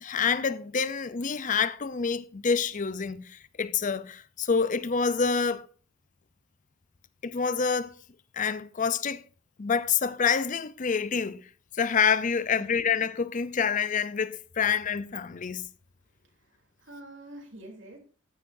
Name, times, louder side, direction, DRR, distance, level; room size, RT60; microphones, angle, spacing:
voice 1, 0.0-5.7 7.2-7.9 8.3-9.2 9.6-11.5 11.7-15.7, left 6 dB, 40° left, 0.6 m, -27 dB
voice 2, 12.5-12.9 16.2-18.0, right 1 dB, 65° right, 3.3 m, -47 dB
14.5 x 10.5 x 2.6 m
head